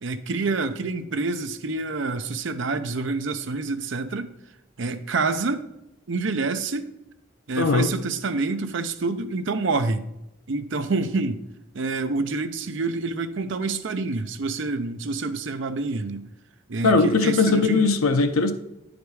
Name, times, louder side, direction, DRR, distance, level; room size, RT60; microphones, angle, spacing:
voice 1, 0.0-4.3 4.8-5.7 6.1-6.9 7.5-10.1 10.5-11.4 11.7-16.3 16.7-17.8, right 3 dB, 65° right, 0.6 m, -27 dB
voice 2, 7.6-7.9 16.8-18.5, left 3 dB, 90° left, 0.7 m, -19 dB
9.2 x 5.1 x 4.7 m
head